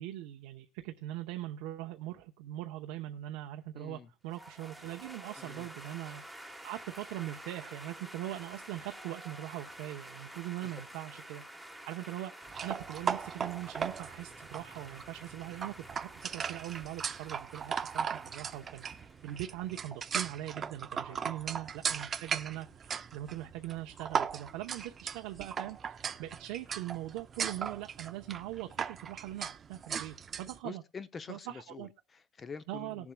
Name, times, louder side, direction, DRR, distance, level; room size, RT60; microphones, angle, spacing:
voice 1, 0.0-6.2 6.6-30.8 31.3-31.9 32.7-33.1, right 14 dB, 90° right, 0.8 m, -41 dB
voice 2, 3.7-4.1 5.4-5.7 10.2-10.7 21.1-21.2 30.6-33.1, left 5 dB, 25° left, 0.7 m, -47 dB
sound 1, 4.3-19.8, right 1 dB, ahead, 1.2 m, -50 dB
sound 2, 12.5-30.6, right 7 dB, 30° right, 0.5 m, -38 dB
19.0 x 7.2 x 2.3 m
cardioid pair, 155°, 0 cm